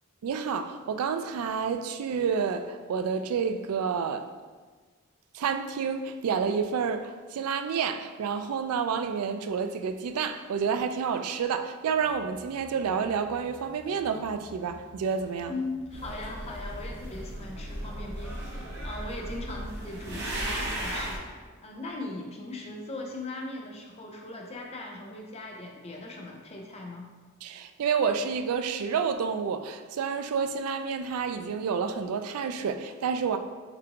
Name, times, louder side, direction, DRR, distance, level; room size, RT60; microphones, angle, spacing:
voice 1, 0.2-4.3 5.3-15.5 27.4-33.4, right 6 dB, 85° right, 0.3 m, -29 dB
sound 1, 11.8-18.1, equal, ahead, 0.8 m, -53 dB
voice 2, 15.5-21.2 21.6-27.1, left 2 dB, 30° left, 0.5 m, -39 dB
sound 2, 15.9-21.2, right 1 dB, 50° right, 1.0 m, -36 dB
6.6 x 2.5 x 2.9 m
head